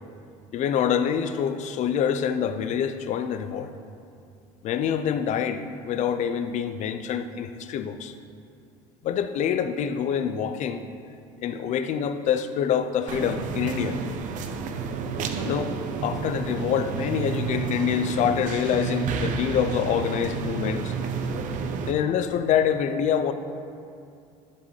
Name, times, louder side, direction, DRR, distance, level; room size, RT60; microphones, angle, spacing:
voice 1, 0.5-3.7 4.6-8.1 9.0-10.8 11.4-14.0 15.4-20.9 21.9-23.3, left 8 dB, 50° left, 10 dB, 0.6 m, -26 dB
sound 1, 13.1-21.9, right 5 dB, 55° right, 0.7 m, -30 dB
11.5 x 7.3 x 3.3 m, 2.5 s
supercardioid pair, 100°, 16 cm